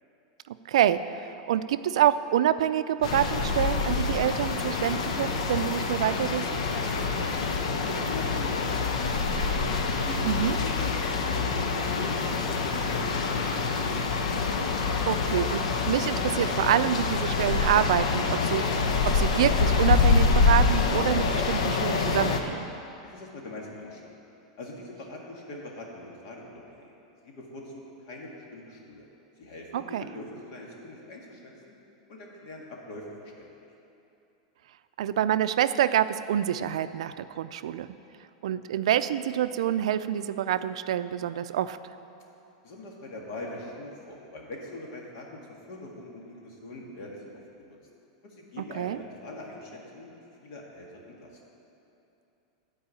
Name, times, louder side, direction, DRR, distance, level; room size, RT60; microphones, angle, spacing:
voice 1, 0.5-6.6 10.2-10.6 15.1-22.7 29.7-30.0 35.0-37.9 38.4-41.8 48.8-49.0, right 11 dB, 80° right, 12 dB, 0.4 m, -27 dB
sound 1, 3.0-22.4, left 4 dB, 85° left, 1.0 m, -26 dB
voice 2, 6.9-9.4 9.9-13.8 23.0-24.1 24.6-26.9 27.2-29.1 29.4-29.9 30.1-31.5 32.1-33.5 42.6-45.4 45.7-47.8 48.2-50.1 50.4-51.3, left 2 dB, 50° left, -1 dB, 1.9 m, -43 dB
11.5 x 4.7 x 8.3 m, 2.9 s
supercardioid pair, 170°, 3 cm